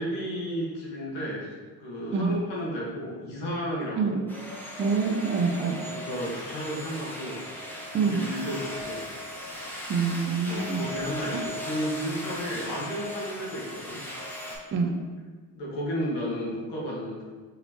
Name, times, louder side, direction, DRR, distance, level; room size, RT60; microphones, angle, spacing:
voice 1, 0.0-1.5 1.8-4.2 5.6-7.4 8.0-9.0 10.5-14.0 15.6-17.2, equal, 90° left, -5 dB, 1.5 m, -33 dB
sound 1, 4.3-14.6, left 1 dB, 5° left, 0.9 m, -38 dB
voice 2, 4.8-5.8 7.9-8.2 9.9-10.8 14.7-14.9, right 5 dB, 30° right, 3 dB, 0.5 m, -26 dB
4.1 x 4.0 x 2.9 m, 1.4 s
cardioid pair, 100°, 41 cm